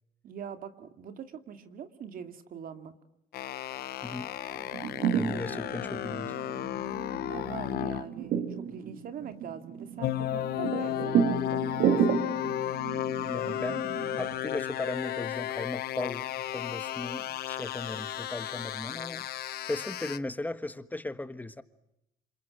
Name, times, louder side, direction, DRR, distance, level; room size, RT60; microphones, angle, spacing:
voice 1, 0.2-2.9 5.1-5.4 7.3-12.2, right 8 dB, 55° right, 2.5 m, -43 dB
sound 1, 3.3-8.1 10.0-20.2, left 12 dB, 65° left, 1.1 m, -34 dB
voice 2, 4.0-4.3 5.1-6.4 13.2-19.3 19.7-21.6, left 2 dB, 10° left, 1.4 m, -37 dB
sound 2, 4.5-14.3, right 8 dB, 75° right, 3.8 m, -32 dB
27.5 x 26.5 x 7.5 m
cardioid pair, 110°, 17 cm